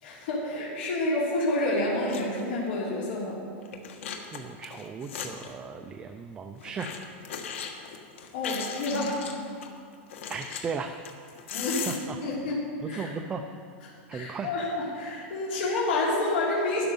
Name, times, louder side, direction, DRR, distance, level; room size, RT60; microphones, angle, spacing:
voice 1, 0.0-3.4 8.3-9.2 11.5-11.9 12.2-13.1 14.1-16.8, left 2 dB, 60° left, -6 dB, 3.2 m, -29 dB
sound 1, 1.6-1.7 2.1-2.4 2.7-2.8 3.6-5.6 6.6-9.7 10.1-12.1, left 7 dB, 90° left, 1.4 m, -38 dB
voice 2, 4.1-6.9 10.3-10.9 11.6-12.2 12.8-13.4 14.1-14.5, right 5 dB, 15° right, 6 dB, 0.4 m, -36 dB
12.5 x 11.0 x 5.4 m, 2.3 s
supercardioid pair, 180°, 7 cm